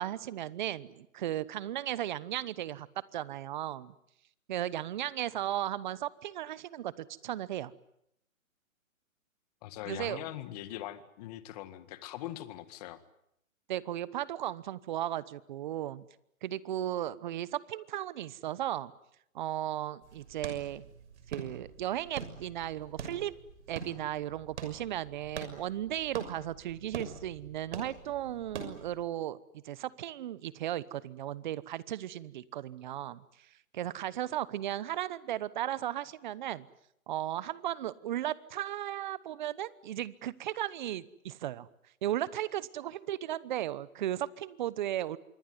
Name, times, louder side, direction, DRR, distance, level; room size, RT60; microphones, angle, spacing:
voice 1, 0.0-2.9 3.1-3.9 4.5-7.7 9.9-10.2 13.7-16.0 16.4-18.9 19.3-20.8 21.3-23.3 23.7-29.4 29.6-33.2 33.7-36.7 37.1-41.7 42.0-45.2, right 12 dB, 35° right, 20 dB, 1.0 m, -35 dB
voice 2, 9.6-13.0, left 13 dB, 30° left, 13 dB, 1.8 m, -42 dB
sound 1, 20.0-29.0, right 6 dB, 50° right, 6.3 m, -45 dB
26.0 x 22.5 x 9.6 m, 0.76 s
hypercardioid pair, 155°, 42 cm